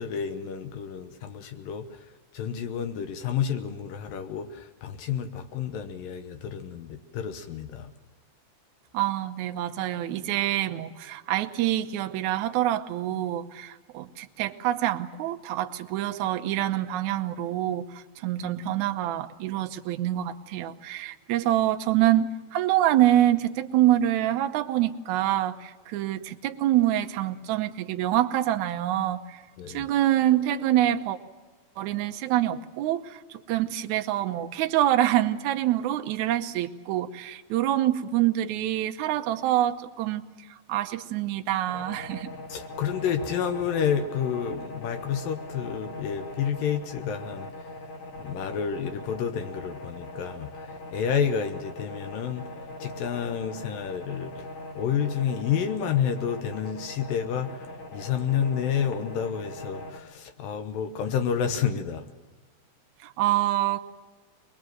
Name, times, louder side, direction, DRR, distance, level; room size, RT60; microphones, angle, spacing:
voice 1, 0.0-2.1 2.3-7.9 29.6-29.9 42.5-47.5 48.2-52.5 52.8-54.5 54.7-62.1, left 8 dB, 75° left, 2.7 m, -30 dB
voice 2, 8.9-29.4 29.7-31.2 31.8-40.2 40.7-42.3 63.0-63.8, right 13 dB, 70° right, 2.0 m, -26 dB
sound 1, 41.7-60.0, left 1 dB, 50° left, 3.3 m, -41 dB
23.0 x 21.0 x 7.8 m
omnidirectional pair, 4.2 m